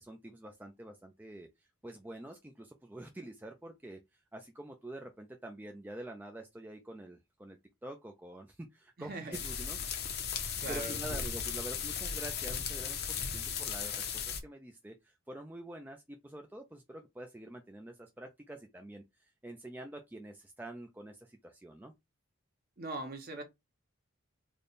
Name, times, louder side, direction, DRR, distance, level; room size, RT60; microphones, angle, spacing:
voice 1, 0.0-1.5 1.8-4.0 4.3-10.0 10.7-21.9, right 1 dB, 10° right, 0.3 m, -47 dB
voice 2, 9.0-9.4 10.6-11.2 22.8-23.4, right 2 dB, 45° right, 0.9 m, -41 dB
sound 1, 9.3-14.4, left 7 dB, 50° left, 0.7 m, -36 dB
3.4 x 2.2 x 3.9 m
head